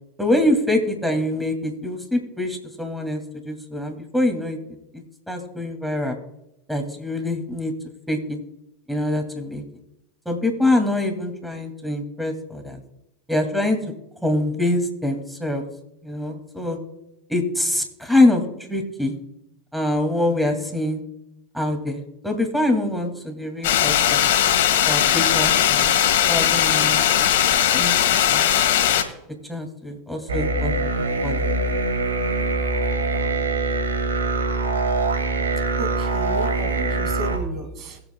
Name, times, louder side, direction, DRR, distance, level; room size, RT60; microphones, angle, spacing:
voice 1, 0.2-4.6 4.9-6.2 6.7-7.7 8.1-8.4 8.9-9.6 10.3-12.8 13.3-13.8 14.2-15.6 16.0-16.8 17.3-18.4 18.7-19.2 19.7-21.0 21.5-24.2 24.8-25.9 26.3-27.3 27.7-28.0 28.3-28.4 29.5-31.4, left 1 dB, ahead, 4 dB, 2.3 m, -24 dB
sound 1, 23.6-29.0, left 10 dB, 70° left, 1.6 m, -19 dB
sound 2, 30.3-37.4, right 2 dB, 85° right, 2.0 m, -23 dB
voice 2, 35.8-38.0, right 1 dB, 45° right, 7 dB, 2.1 m, -33 dB
21.5 x 8.0 x 2.2 m, 0.85 s
hypercardioid pair, 90°, 0 cm